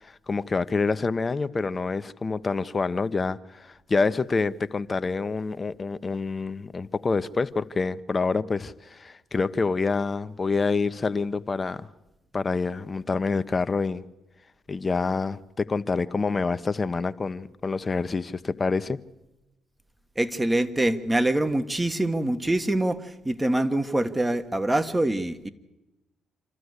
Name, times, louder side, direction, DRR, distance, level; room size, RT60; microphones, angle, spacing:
voice 1, 0.0-11.9 12.3-14.0 14.7-19.0, left 4 dB, 35° left, 0.9 m, -27 dB
voice 2, 20.2-25.5, right 1 dB, 15° right, 1.4 m, -25 dB
27.0 x 13.0 x 8.2 m
hypercardioid pair, 55°, 0 cm